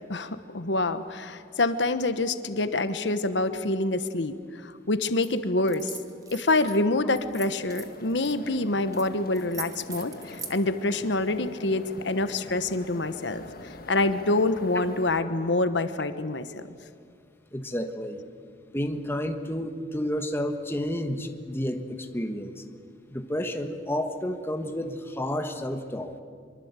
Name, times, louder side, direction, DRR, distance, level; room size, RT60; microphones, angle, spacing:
voice 1, 0.0-5.9 6.3-16.7, left 2 dB, 80° left, 11 dB, 1.1 m, -26 dB
sound 1, 5.1-5.3 5.6-6.8 7.2-8.3 8.9-9.1 9.3-10.6, right 5 dB, 20° right, 1.9 m, -41 dB
sound 2, 7.5-15.2, left 2 dB, 55° left, 1.5 m, -44 dB
voice 2, 17.5-18.2 18.7-22.6 23.1-26.1, equal, 15° left, 6 dB, 1.4 m, -31 dB
25.0 x 23.5 x 8.2 m, 2.2 s
head